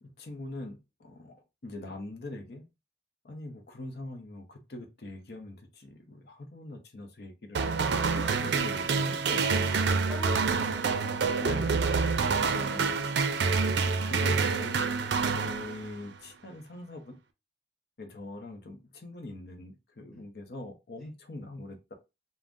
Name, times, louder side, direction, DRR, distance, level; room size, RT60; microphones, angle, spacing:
voice 1, 0.0-1.4 1.6-2.7 3.2-7.9 8.4-9.7 11.4-11.9 12.4-13.0 14.0-14.9 15.3-17.1 18.0-21.9, left 2 dB, 65° left, 0.7 m, -42 dB
sound 1, 7.5-16.1, right 5 dB, 80° right, 0.4 m, -27 dB
voice 2, 8.1-8.6 9.6-11.3 12.2-13.9 20.1-20.3 21.0-21.1, left 1 dB, ahead, 0.8 m, -46 dB
2.5 x 2.0 x 3.4 m
head